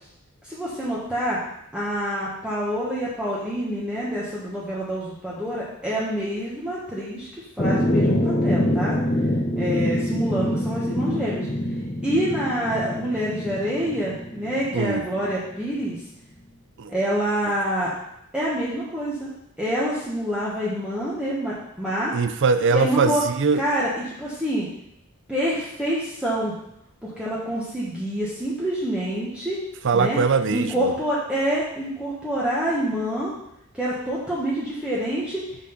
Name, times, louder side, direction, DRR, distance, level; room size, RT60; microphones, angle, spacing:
voice 1, 0.4-1.4 1.7-7.3 7.6-9.0 9.5-11.5 12.0-16.0 16.9-17.9 18.3-19.3 19.6-22.1 22.7-23.2 23.5-24.7 25.3-26.6 27.0-29.6 29.9-30.2 30.5-33.3 33.7-35.5, equal, 5° right, -8 dB, 1.3 m, -26 dB
sound 1, 7.6-15.4, left 1 dB, 30° left, 0.8 m, -25 dB
voice 2, 14.7-15.1 16.8-16.9 22.1-23.6 29.8-30.9, right 5 dB, 60° right, 10 dB, 0.5 m, -21 dB
6.1 x 5.7 x 5.8 m, 0.79 s
head